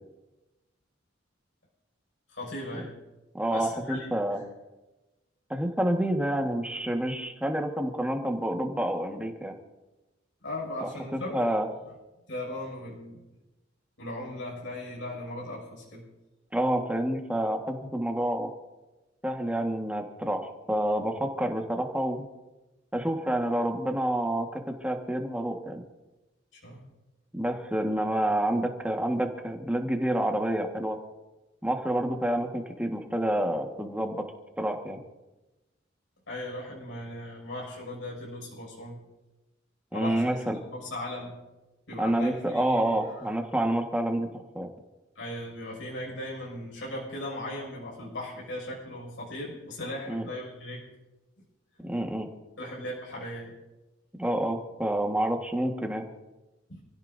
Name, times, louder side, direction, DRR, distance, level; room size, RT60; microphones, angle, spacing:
voice 1, 2.3-2.9 3.5-4.4 10.4-11.4 12.3-13.2 14.0-16.0 26.5-26.8 36.3-39.0 39.9-40.3 40.6-41.4 41.9-43.0 45.1-50.8 52.6-53.5 56.7-56.8, left 1 dB, 70° left, -3 dB, 6.2 m, -38 dB
voice 2, 3.3-4.4 5.5-9.5 10.8-11.7 16.5-18.5 19.2-22.2 22.9-25.8 27.3-31.0 31.6-34.3 34.6-35.0 39.9-40.6 42.0-44.7 50.1-50.3 51.8-52.3 54.2-56.1, right 1 dB, 5° right, 3 dB, 1.6 m, -28 dB
28.0 x 16.5 x 2.7 m, 1.1 s
head